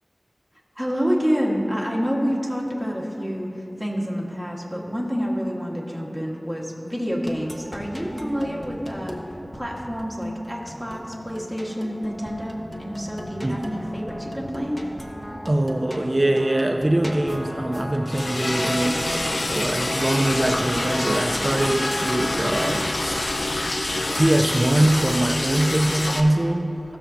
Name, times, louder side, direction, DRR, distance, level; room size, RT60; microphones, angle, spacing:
voice 1, 0.7-14.8, equal, 5° left, -3 dB, 1.7 m, -28 dB
sound 1, 7.2-24.2, equal, 25° left, 1.1 m, -34 dB
voice 2, 15.5-23.4 24.1-26.8, right 1 dB, 40° right, 4 dB, 0.4 m, -23 dB
Liquid, 18.1-26.2, left 1 dB, 70° left, 0.6 m, -26 dB
15.5 x 6.9 x 2.8 m, 2.8 s
wide cardioid pair, 50°, 0 cm